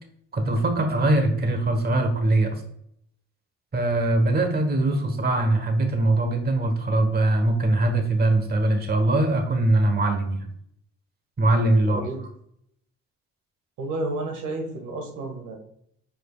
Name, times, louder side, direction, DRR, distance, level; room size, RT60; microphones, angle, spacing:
voice 1, 0.3-2.6 3.7-10.5 11.4-12.0, right 2 dB, 30° right, 5 dB, 1.4 m, -22 dB
voice 2, 13.8-15.6, right 2 dB, 90° right, 3 dB, 1.7 m, -31 dB
9.0 x 5.1 x 2.4 m, 0.71 s
cardioid pair, 90°, 30 cm